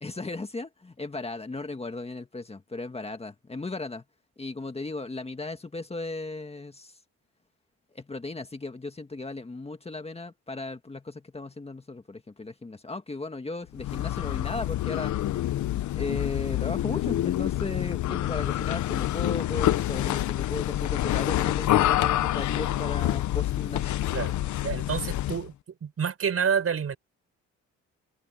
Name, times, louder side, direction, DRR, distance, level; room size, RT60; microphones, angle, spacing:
voice 1, 0.0-4.0 4.4-7.0 7.9-15.3 15.9-24.0, left 3 dB, 20° left, 1.8 m, -36 dB
sound 1, 13.7-25.5, left 14 dB, 75° left, 0.9 m, -27 dB
voice 2, 24.6-25.5 25.8-27.0, right 7 dB, 50° right, 5.4 m, -28 dB
cardioid pair, 90°, 30 cm